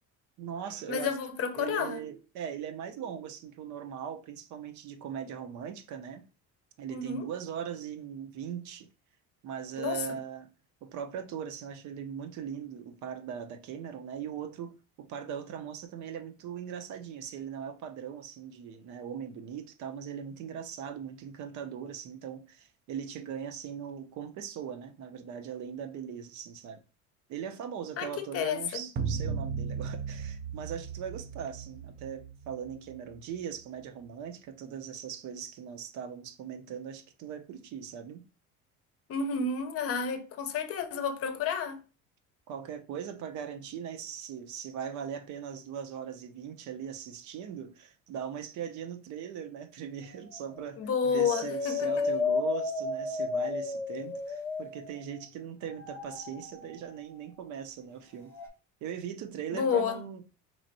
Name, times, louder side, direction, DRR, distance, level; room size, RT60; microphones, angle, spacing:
voice 1, 0.4-1.2 1.5-6.2 6.8-8.9 9.4-10.5 10.8-26.8 27.3-38.2 42.5-58.3 58.8-60.2, right 8 dB, 65° right, 0.7 m, -40 dB
voice 2, 0.9-2.0 6.9-7.2 9.8-10.0 28.0-28.8 39.1-41.8 50.8-52.0 59.5-60.0, left 6 dB, 45° left, 0.7 m, -30 dB
sound 1, 29.0-33.4, right 5 dB, 30° right, 0.4 m, -36 dB
sound 2, 50.0-50.6 51.0-55.2 55.7-57.0 58.3-58.5, left 4 dB, 10° left, 0.9 m, -33 dB
4.3 x 3.1 x 2.6 m
cardioid pair, 135°, 32 cm